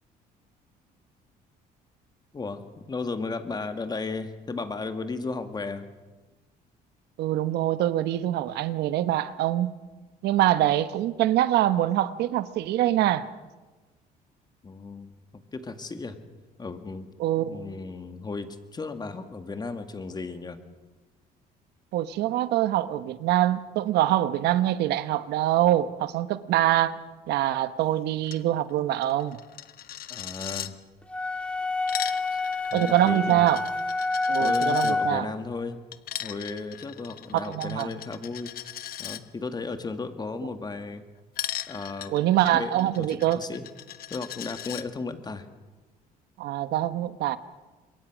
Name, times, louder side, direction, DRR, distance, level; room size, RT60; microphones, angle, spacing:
voice 1, 2.3-5.9 14.6-16.2 16.6-17.1 17.4-20.6 30.1-30.7 32.3-32.4 32.7-33.6 34.4-35.8 36.2-38.5 39.0-41.0 41.7-42.1 42.5-43.7 44.1-45.5, left 3 dB, 25° left, 2.1 m, -35 dB
voice 2, 7.2-9.7 10.2-13.3 17.2-17.6 21.9-27.0 27.3-29.4 32.7-33.6 34.3-35.3 37.3-37.9 42.1-43.4 46.4-47.4, right 13 dB, 80° right, 1.1 m, -24 dB
Coin (dropping), 28.2-28.4 28.7-28.8 29.0-30.7 31.6-34.9 35.9-39.2 41.4-44.8, left 12 dB, 60° left, 1.2 m, -38 dB
sound 1, 31.1-35.4, left 3 dB, 5° left, 2.9 m, -27 dB
26.5 x 22.5 x 6.3 m
cardioid pair, 110°, 17 cm